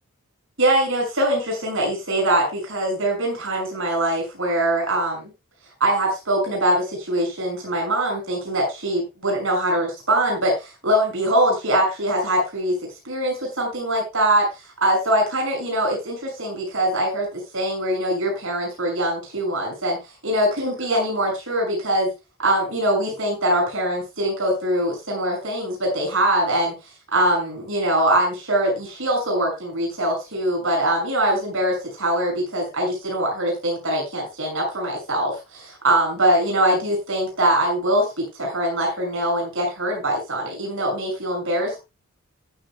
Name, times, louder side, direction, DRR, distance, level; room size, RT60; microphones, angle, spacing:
voice 1, 0.6-5.2 5.8-12.8 13.0-14.5 14.8-20.0 20.2-22.1 22.4-26.7 27.1-41.8, right 1 dB, 65° right, 0 dB, 6.8 m, -22 dB
15.0 x 11.0 x 2.3 m, 0.27 s
head